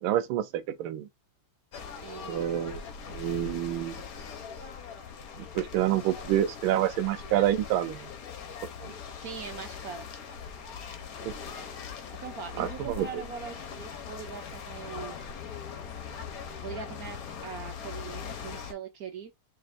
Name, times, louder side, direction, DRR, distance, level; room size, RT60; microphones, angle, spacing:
voice 1, 0.0-1.1 2.3-2.8 3.1-4.1 5.4-8.1 8.8-8.9 11.2-11.3 12.6-13.2, right 12 dB, 80° right, 1.5 m, -28 dB
sound 1, 1.7-18.7, left 6 dB, 55° left, 1.1 m, -41 dB
voice 2, 2.0-2.5 9.2-10.1 12.2-15.4 16.6-19.3, right 6 dB, 65° right, 0.9 m, -41 dB
5.5 x 2.5 x 2.5 m
omnidirectional pair, 2.3 m